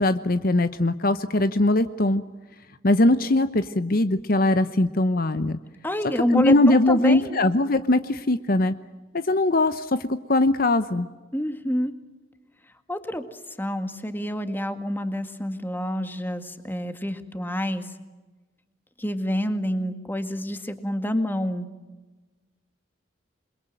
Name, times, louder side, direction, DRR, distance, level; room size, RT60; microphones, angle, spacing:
voice 1, 0.0-2.2 2.8-5.6 6.3-8.7 9.1-10.0 10.3-11.1, left 2 dB, 50° left, 11 dB, 1.0 m, -21 dB
voice 2, 5.8-7.4 11.3-11.9 12.9-13.2 13.6-17.9 19.0-21.7, equal, 10° left, 8 dB, 2.0 m, -28 dB
28.5 x 22.5 x 9.2 m, 1.2 s
head